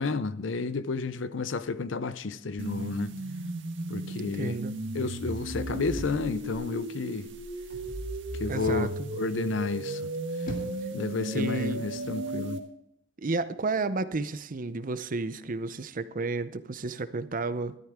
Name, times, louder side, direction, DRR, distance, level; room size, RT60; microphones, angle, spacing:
voice 1, 0.0-3.1 3.9-4.6 4.9-7.3 8.3-10.1 10.9-12.6, left 4 dB, 70° left, 0.6 m, -31 dB
sound 1, 2.6-12.6, right 2 dB, 70° right, 1.6 m, -35 dB
voice 2, 4.3-4.7 8.5-9.1 11.3-11.8 13.2-17.8, right 3 dB, 45° right, 0.7 m, -32 dB
sound 2, 5.9-7.0 7.7-8.1 10.1-11.0 11.9-12.2, equal, 45° left, 2.0 m, -42 dB
13.5 x 12.5 x 3.6 m
head